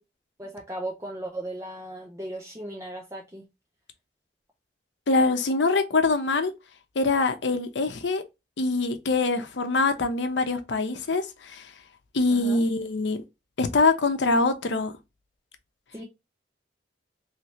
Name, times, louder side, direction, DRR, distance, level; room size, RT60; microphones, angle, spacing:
voice 1, 0.4-3.4 12.3-12.7 15.9-16.0, right 1 dB, 15° right, 0.6 m, -36 dB
voice 2, 5.1-6.5 7.0-8.2 8.6-11.7 12.1-13.2 13.6-14.9, left 3 dB, 80° left, 0.7 m, -24 dB
3.2 x 2.8 x 3.0 m
head